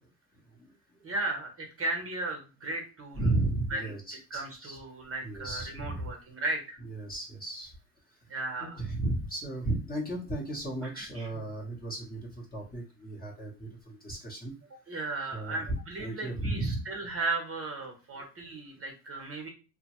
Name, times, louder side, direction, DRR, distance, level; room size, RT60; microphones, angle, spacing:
voice 1, 1.0-3.2 3.7-3.9 4.3-6.8 8.3-8.8 10.8-11.5 14.9-19.5, right 2 dB, 25° right, 2 dB, 0.9 m, -36 dB
voice 2, 3.1-4.8 5.2-6.1 6.8-7.7 8.6-14.5 15.3-16.8 18.1-18.2, right 2 dB, 20° left, -2 dB, 0.9 m, -34 dB
2.8 x 2.2 x 2.9 m, 0.33 s
supercardioid pair, 110°, 49 cm